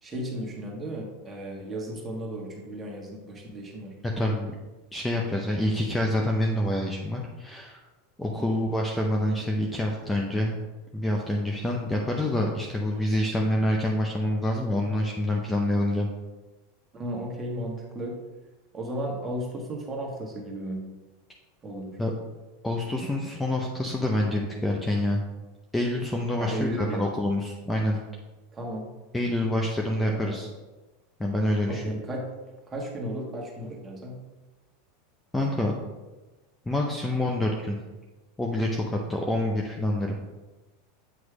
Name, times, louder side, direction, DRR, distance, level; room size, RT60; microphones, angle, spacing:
voice 1, 0.0-3.9 8.4-8.7 16.9-18.2 18.7-20.8 21.6-22.0 26.4-27.1 28.5-28.9 30.0-30.4 31.7-32.2 32.7-34.2, right 1 dB, 20° right, -1 dB, 1.5 m, -34 dB
voice 2, 4.0-4.5 4.9-7.8 8.2-10.6 10.9-16.1 22.0-22.1 22.6-25.2 25.7-28.0 29.1-30.5 31.2-32.0 35.3-35.7 36.7-37.8 38.4-40.1, left 1 dB, 10° left, 0 dB, 0.7 m, -27 dB
8.0 x 3.1 x 4.8 m, 1.2 s
supercardioid pair, 130°, 0 cm